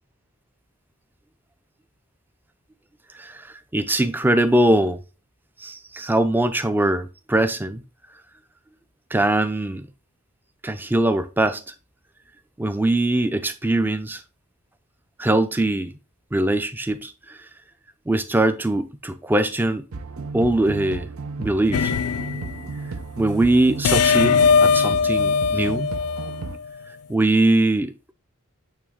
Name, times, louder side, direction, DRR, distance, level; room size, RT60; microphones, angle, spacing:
voice 1, 3.1-5.0 5.6-7.8 9.1-9.9 10.6-11.6 12.6-14.2 15.2-15.9 16.3-17.4 18.1-19.8 20.3-21.1 21.4-21.9 23.2-25.9 27.1-28.1, right 1 dB, 10° right, 0.4 m, -22 dB
sound 1, 19.9-26.6, right 4 dB, 75° right, 0.6 m, -33 dB
sound 2, 21.7-22.6 23.8-26.7, left 6 dB, 90° left, 0.4 m, -20 dB
8.7 x 3.2 x 3.6 m
head